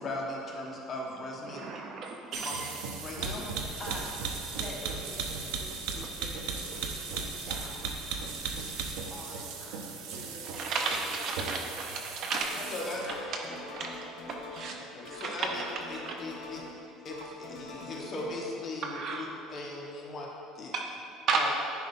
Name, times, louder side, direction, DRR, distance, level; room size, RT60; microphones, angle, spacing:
voice 1, 0.0-1.6 2.4-2.5 3.0-3.5 12.7-13.1 14.7-15.6 15.9-16.6 17.0-17.2 17.5-20.3 20.5-20.7 21.3-21.5, left 2 dB, 25° left, -2 dB, 1.0 m, -38 dB
voice 2, 1.5-2.7 10.5-12.6 13.1-13.4 13.7-13.9 14.3-14.8 15.2-16.2 18.8-19.3 20.7-20.9 21.3-21.5, right 4 dB, 40° right, 2 dB, 0.5 m, -33 dB
sound 1, 2.3-13.2, right 5 dB, 80° right, 0.8 m, -37 dB
voice 3, 3.8-4.2 4.5-8.1 9.1-11.8 12.5-14.3 14.9-15.5, left 1 dB, ahead, -6 dB, 1.3 m, -47 dB
sound 2, 12.4-12.8 13.0-14.8 15.0-16.8 17.1-18.3, left 2 dB, 55° left, 1.4 m, -44 dB
10.0 x 4.6 x 4.2 m, 2.7 s
cardioid pair, 165°, 0 cm